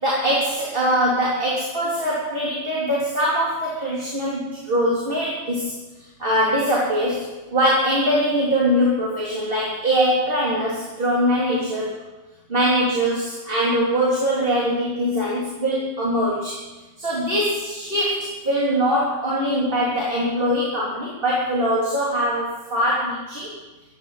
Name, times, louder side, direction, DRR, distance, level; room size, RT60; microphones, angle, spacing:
voice 1, 0.0-5.7 6.2-11.9 12.5-16.6 17.0-23.5, equal, 45° right, -6 dB, 3.5 m, -22 dB
16.5 x 11.0 x 5.7 m, 1.1 s
omnidirectional pair, 1.4 m